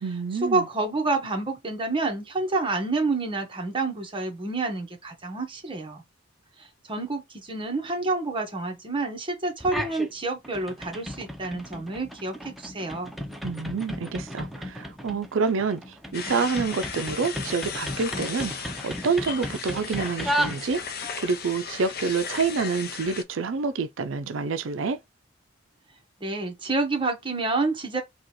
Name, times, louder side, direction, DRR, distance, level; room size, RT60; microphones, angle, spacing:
voice 1, 0.0-0.7 13.4-20.8 21.2-25.0, right 5 dB, 75° right, 0.5 m, -28 dB
voice 2, 0.5-6.0 6.9-13.1 26.2-28.0, right 3 dB, 25° right, 1.1 m, -28 dB
Door shake, 9.6-10.1 10.4-21.1, equal, ahead, 0.5 m, -34 dB
sound 1, 16.1-23.2, left 6 dB, 50° left, 0.6 m, -36 dB
4.8 x 2.4 x 3.0 m
head